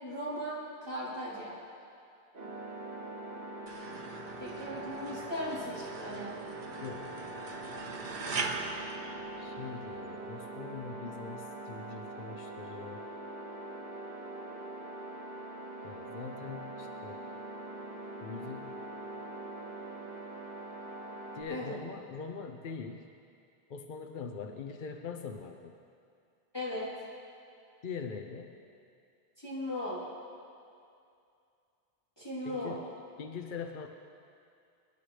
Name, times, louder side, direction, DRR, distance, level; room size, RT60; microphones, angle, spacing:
voice 1, 0.0-1.6 4.4-6.3 21.5-21.8 26.5-26.9 29.4-30.0 32.2-32.8, left 1 dB, 25° left, -10 dB, 3.3 m, -37 dB
sound 1, 2.3-21.4, right 2 dB, 80° right, 2.6 m, -43 dB
sound 2, 3.7-9.9, right 4 dB, 55° right, 1.0 m, -41 dB
voice 2, 6.8-7.3 9.4-13.0 15.8-17.2 18.2-18.8 21.3-23.1 23.7-25.7 27.8-28.5 32.4-32.9 33.2-33.9, left 5 dB, 55° left, 5 dB, 0.8 m, -42 dB
25.0 x 11.5 x 3.3 m, 2.5 s
omnidirectional pair, 1.1 m